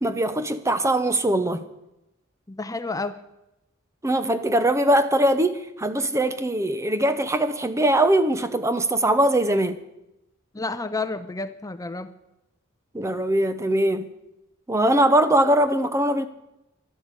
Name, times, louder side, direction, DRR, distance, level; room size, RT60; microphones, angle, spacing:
voice 1, 0.0-1.6 4.0-9.8 12.9-14.1 14.7-16.3, right 1 dB, 15° right, 0.7 m, -21 dB
voice 2, 2.5-3.2 10.5-12.1, left 3 dB, 15° left, 0.7 m, -30 dB
12.5 x 12.0 x 8.4 m
head